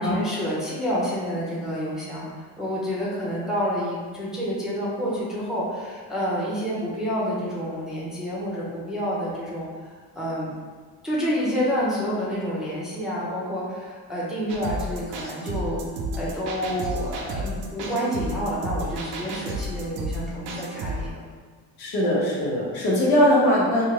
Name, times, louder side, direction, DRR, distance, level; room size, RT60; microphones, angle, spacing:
voice 1, 0.0-10.5 11.0-15.8 16.2-21.1, equal, ahead, -8 dB, 0.8 m, -28 dB
sound 1, 14.5-21.1, right 1 dB, 80° right, 0.6 m, -32 dB
voice 2, 21.8-23.8, left 1 dB, 70° left, -5 dB, 1.2 m, -20 dB
3.6 x 2.5 x 3.0 m, 1.5 s
cardioid pair, 115°, 41 cm